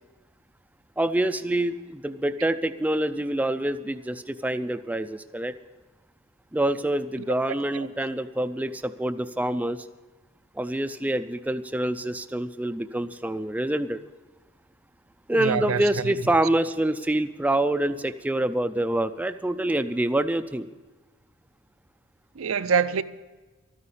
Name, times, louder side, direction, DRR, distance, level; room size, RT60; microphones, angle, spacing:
voice 1, 1.0-5.5 6.5-9.9 10.5-14.0 15.3-20.7, right 1 dB, 5° right, 0.4 m, -26 dB
voice 2, 15.3-16.2 22.4-23.0, right 6 dB, 70° right, 0.5 m, -25 dB
13.0 x 9.8 x 8.0 m
head